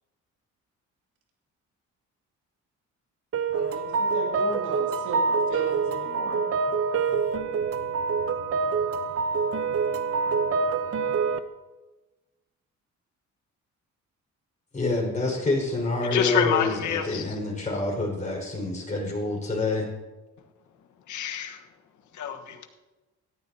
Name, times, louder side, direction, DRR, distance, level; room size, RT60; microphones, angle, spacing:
sound 1, 3.3-11.4, right 5 dB, 50° right, 0.9 m, -26 dB
voice 1, 3.5-6.4, right 4 dB, 85° right, 0 dB, 2.6 m, -36 dB
voice 2, 14.7-19.9, left 2 dB, 25° left, -1 dB, 5.2 m, -27 dB
voice 3, 16.0-17.4 21.1-21.7 22.1-22.7, left 9 dB, 75° left, 5 dB, 1.4 m, -27 dB
17.5 x 13.5 x 2.9 m, 1.1 s
cardioid pair, 90°, 30 cm